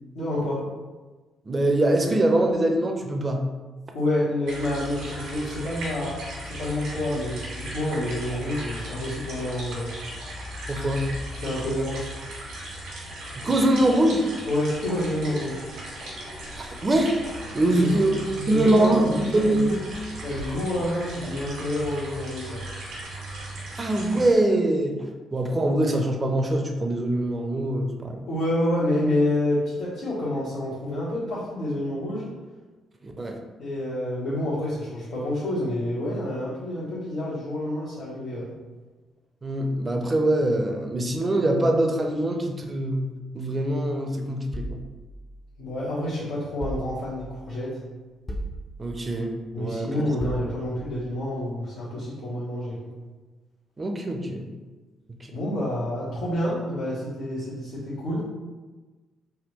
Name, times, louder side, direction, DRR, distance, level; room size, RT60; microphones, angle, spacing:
voice 1, 0.1-0.6 3.9-6.2 6.4-9.9 11.3-12.0 14.5-15.6 17.6-19.8 20.2-22.6 28.2-32.3 33.6-38.5 45.6-47.8 49.5-52.8 55.3-58.2, left 1 dB, 85° left, -11 dB, 1.0 m, -28 dB
voice 2, 1.5-3.4 10.7-11.1 13.4-14.3 16.6-17.1 17.5-18.1 18.5-19.7 23.8-25.0 25.3-28.2 33.0-33.4 39.4-44.8 48.8-50.0 53.8-54.5 55.2-55.3, right 1 dB, 30° right, 3 dB, 0.5 m, -23 dB
sound 1, 4.5-24.3, right 1 dB, 90° right, 1.4 m, -37 dB
sound 2, 44.5-45.9 46.6-47.4 48.3-49.2 50.2-51.0, right 1 dB, 25° left, 0.5 m, -37 dB
3.5 x 2.2 x 3.0 m, 1.3 s
cardioid pair, 90°, 0 cm